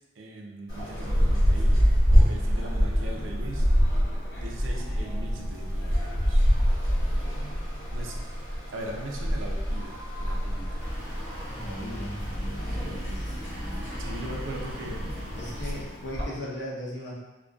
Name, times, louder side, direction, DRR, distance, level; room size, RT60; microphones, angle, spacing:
voice 1, 0.2-3.7 4.4-6.4 7.9-8.1 8.7-10.8 12.9-13.0 13.8-15.0 15.6-15.7, right 1 dB, 70° right, 0 dB, 0.4 m, -40 dB
sound 1, 0.7-16.3, equal, 70° left, 1.0 m, -26 dB
sound 2, 10.8-15.8, equal, ahead, 0.6 m, -36 dB
voice 2, 11.5-13.4 15.4-17.2, left 1 dB, 55° left, -5 dB, 0.6 m, -38 dB
2.2 x 2.2 x 2.5 m, 1.1 s
head